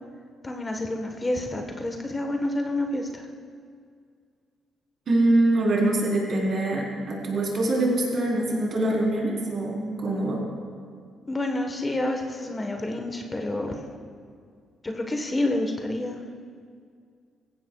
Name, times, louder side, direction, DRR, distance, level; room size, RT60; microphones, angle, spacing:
voice 1, 0.4-3.3 11.3-13.9 14.8-16.2, left 1 dB, 20° left, 3 dB, 1.2 m, -28 dB
voice 2, 5.1-10.4, right 1 dB, 55° right, -2 dB, 3.8 m, -24 dB
18.0 x 15.5 x 2.3 m, 2.2 s
cardioid pair, 90°, 0 cm